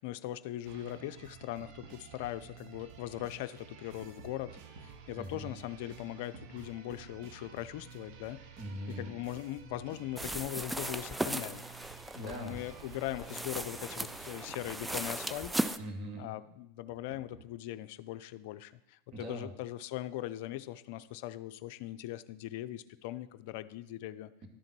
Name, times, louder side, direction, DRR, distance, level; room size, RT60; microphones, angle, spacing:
voice 1, 0.0-8.4 9.0-11.6 12.2-15.5 16.2-24.3, left 14 dB, 60° left, 12 dB, 0.5 m, -40 dB
sound 1, 0.6-15.5, right 7 dB, 55° right, 0.9 m, -52 dB
Tap, 1.0-2.1 3.5-5.0 6.3-7.8 9.3-10.8 12.6-12.7 13.1-15.3 16.9-17.6, right 3 dB, 70° right, 1.3 m, -56 dB
voice 2, 5.2-5.6 8.6-9.2 12.1-12.6 15.8-16.4 19.1-19.5, right 1 dB, 40° right, 1 dB, 1.9 m, -41 dB
sound 2, 10.2-15.8, right 1 dB, 5° right, 0.4 m, -37 dB
11.5 x 3.8 x 6.0 m, 0.86 s
hypercardioid pair, 100°, 0 cm